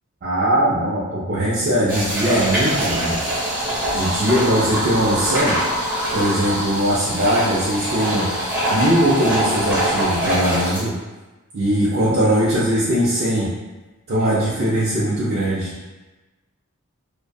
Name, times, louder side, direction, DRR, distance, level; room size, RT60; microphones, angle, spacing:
voice 1, 0.2-3.3 3.9-5.6 6.1-8.3 8.7-10.9 11.5-13.5 14.1-15.7, equal, 45° right, -10 dB, 0.4 m, -20 dB
sound 1, 1.9-10.8, right 1 dB, 10° right, 0.7 m, -23 dB
2.5 x 2.2 x 2.2 m, 1.1 s
head